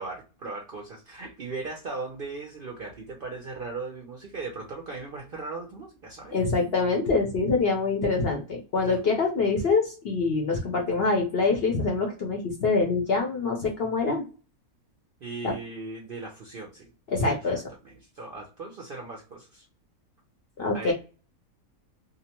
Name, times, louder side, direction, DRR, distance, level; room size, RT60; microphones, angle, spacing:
voice 1, 0.0-6.4 8.8-9.0 15.2-16.9 17.2-19.7 20.7-20.9, right 3 dB, 60° right, 0 dB, 0.6 m, -38 dB
voice 2, 6.3-14.2 17.1-17.6 20.6-20.9, left 3 dB, 55° left, 1 dB, 0.7 m, -25 dB
2.7 x 2.1 x 2.8 m, 0.34 s
omnidirectional pair, 1.5 m